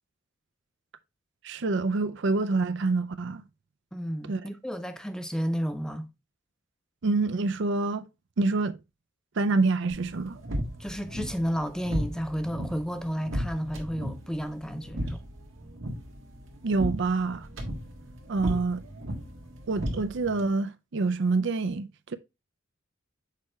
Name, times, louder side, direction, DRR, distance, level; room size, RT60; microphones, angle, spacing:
voice 1, 1.4-3.4 4.3-4.4 7.0-8.0 8.4-8.8 9.4-10.4 16.6-17.5 18.3-18.8 19.7-22.2, right 3 dB, 65° right, 0.5 m, -26 dB
voice 2, 3.9-6.1 10.8-15.2 18.4-18.6, equal, 5° left, 0.5 m, -32 dB
sound 1, 9.9-20.5, equal, 85° right, 1.5 m, -36 dB
6.6 x 4.8 x 3.1 m
head